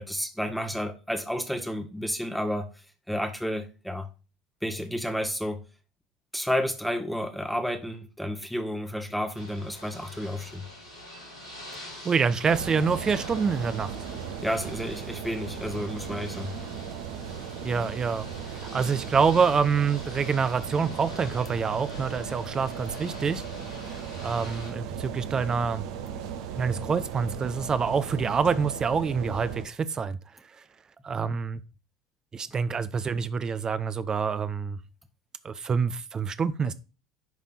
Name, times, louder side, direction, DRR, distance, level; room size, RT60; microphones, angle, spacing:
voice 1, 0.0-4.1 4.6-5.6 6.3-10.7 14.4-16.6, equal, ahead, 1.2 m, -31 dB
Ocean / Boat Water vehicle, 9.3-24.7, left 1 dB, 90° left, 2.4 m, -45 dB
voice 2, 12.0-13.9 17.6-23.4 23.8-25.9 26.6-30.2 31.0-31.6 32.3-34.8 35.4-36.7, right 5 dB, 25° right, 0.6 m, -26 dB
sound 1, 12.5-29.7, right 8 dB, 65° right, 0.9 m, -37 dB
10.5 x 3.5 x 4.2 m
figure-of-eight pair, 70°, 3 cm